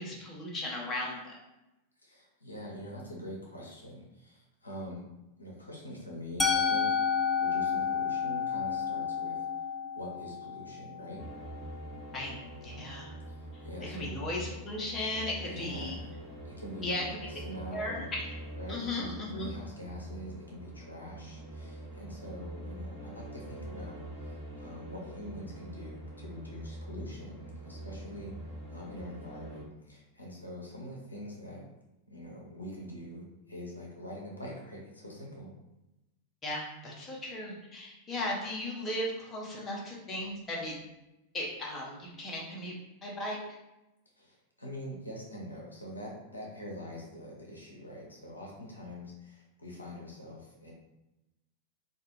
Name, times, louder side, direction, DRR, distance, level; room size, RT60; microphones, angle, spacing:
voice 1, 0.0-1.4 12.1-13.1 13.5-16.0 16.8-17.2 17.7-18.2 18.7-19.5 36.4-40.7 41.3-42.7 43.0-43.4, left 1 dB, 25° left, -3 dB, 0.7 m, -36 dB
voice 2, 2.0-5.0 5.4-7.0 7.4-9.5 9.9-11.2 13.3-14.2 15.5-16.2 16.4-18.1 18.6-28.3 28.7-31.6 32.1-35.5 44.2-50.7, equal, 80° left, -3 dB, 0.6 m, -44 dB
Musical instrument, 6.4-12.3, left 6 dB, 5° left, 0.3 m, -31 dB
sound 1, 11.2-29.6, right 1 dB, 15° right, 0.9 m, -44 dB
2.3 x 2.2 x 3.1 m, 0.96 s
figure-of-eight pair, 90°, 0 cm